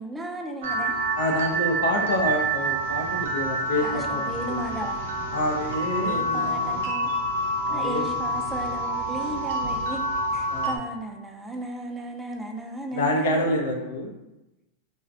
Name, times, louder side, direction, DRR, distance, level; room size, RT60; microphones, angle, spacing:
voice 1, 0.0-1.0 3.8-5.0 6.0-7.1 7.7-10.0 10.3-13.6, right 1 dB, 10° right, 2 dB, 0.4 m, -35 dB
sound 1, 0.6-10.8, right 2 dB, 80° right, 0.4 m, -27 dB
voice 2, 1.2-4.7 5.3-7.1 7.7-8.1 10.5-10.7 12.9-14.1, left 1 dB, 85° left, 0 dB, 0.4 m, -27 dB
2.4 x 2.0 x 2.6 m, 0.96 s
hypercardioid pair, 125°, 0 cm